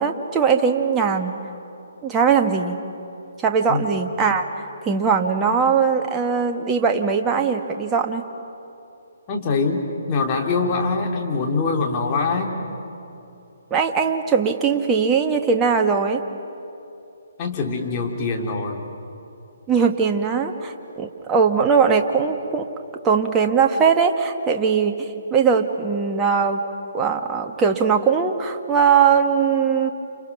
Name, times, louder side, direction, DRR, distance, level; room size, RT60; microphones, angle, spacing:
voice 1, 0.0-1.3 2.0-2.8 3.4-8.2 13.7-16.2 19.7-22.7 23.0-26.6 26.9-29.9, right 6 dB, 15° right, 4 dB, 1.5 m, -20 dB
voice 2, 9.3-12.6 17.4-18.8, left 4 dB, 30° left, 1 dB, 3.0 m, -23 dB
30.0 x 29.0 x 6.0 m, 2.8 s
figure-of-eight pair, 135°, 0 cm